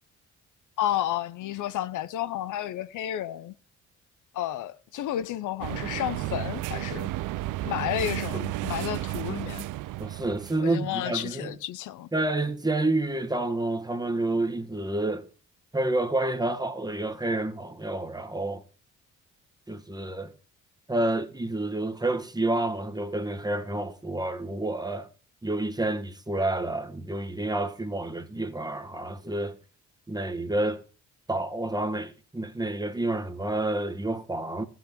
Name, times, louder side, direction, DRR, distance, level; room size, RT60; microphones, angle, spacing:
voice 1, 0.8-3.5 4.3-7.1 7.6-9.7 10.6-12.1, left 12 dB, 80° left, 0.8 m, -31 dB
sound 1, 5.6-10.6, right 16 dB, 90° right, 0.6 m, -33 dB
voice 2, 10.0-11.6 12.1-15.3 15.7-18.6 19.7-20.3 20.9-25.1 25.4-29.6 30.1-30.8 31.3-34.6, right 2 dB, 15° right, 1.5 m, -29 dB
15.0 x 6.0 x 7.1 m
cardioid pair, 90°, 30 cm